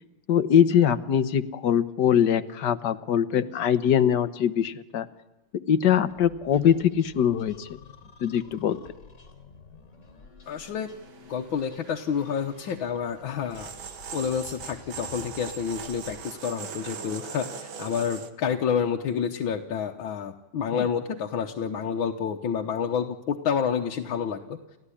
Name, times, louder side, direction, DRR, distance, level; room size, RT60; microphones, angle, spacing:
voice 1, 0.3-5.1 5.7-7.8 8.2-8.8 20.7-20.9, left 9 dB, 65° left, 13 dB, 1.6 m, -22 dB
sound 1, 5.9-16.2, left 4 dB, 45° left, 3.5 m, -51 dB
sound 2, 10.4-18.3, right 7 dB, 85° right, 2.3 m, -41 dB
voice 2, 10.5-10.9 11.3-13.7 14.1-24.6, left 7 dB, 85° left, 3 dB, 1.9 m, -29 dB
29.5 x 14.5 x 9.9 m, 1.1 s
omnidirectional pair, 2.1 m